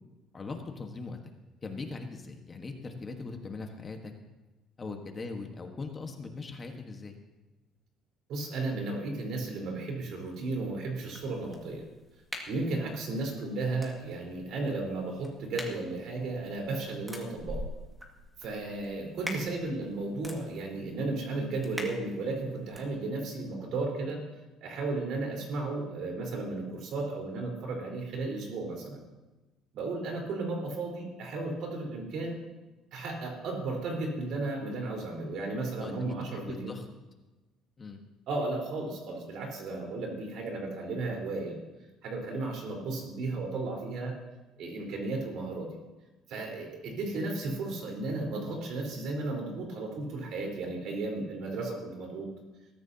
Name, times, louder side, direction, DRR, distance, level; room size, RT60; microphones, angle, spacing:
voice 1, 0.3-1.2 1.6-4.1 4.8-7.1 35.8-36.8 37.8-38.0, left 3 dB, 25° left, 3 dB, 1.4 m, -40 dB
voice 2, 8.3-11.9 12.5-17.6 18.4-24.2 24.6-29.0 29.7-32.4 32.9-36.7 38.3-41.6 42.0-44.2 44.6-45.7 46.3-52.3, right 3 dB, 60° right, 0 dB, 4.3 m, -34 dB
sound 1, 11.1-22.9, left 1 dB, 5° right, 2.0 m, -45 dB
21.0 x 14.0 x 2.9 m, 1.1 s
cardioid pair, 145°, 0 cm